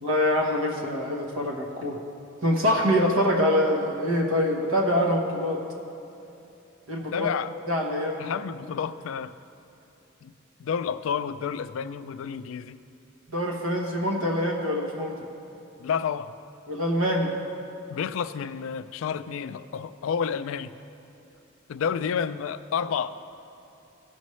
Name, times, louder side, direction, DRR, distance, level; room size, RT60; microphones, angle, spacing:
voice 1, 0.0-2.0 2.4-5.6 6.9-7.3 7.7-8.3 13.3-15.2 16.7-17.3, equal, 90° right, 0 dB, 1.1 m, -25 dB
voice 2, 7.1-7.5 8.2-9.3 10.2-10.3 10.6-12.8 15.8-16.3 17.9-20.7 21.7-23.1, left 7 dB, 80° left, 13 dB, 0.3 m, -30 dB
16.0 x 6.1 x 3.2 m, 2.8 s
head